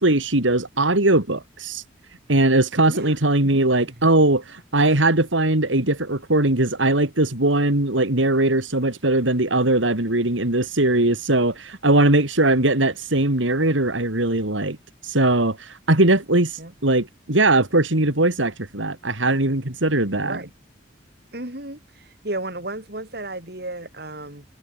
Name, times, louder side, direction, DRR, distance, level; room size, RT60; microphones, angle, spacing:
voice 1, 0.0-1.8 2.3-14.8 15.0-20.4, right 2 dB, 85° right, 3.2 m, -20 dB
voice 2, 2.9-4.1 16.6-16.7 20.2-20.5 21.3-24.4, right 2 dB, 55° right, 4.0 m, -34 dB
head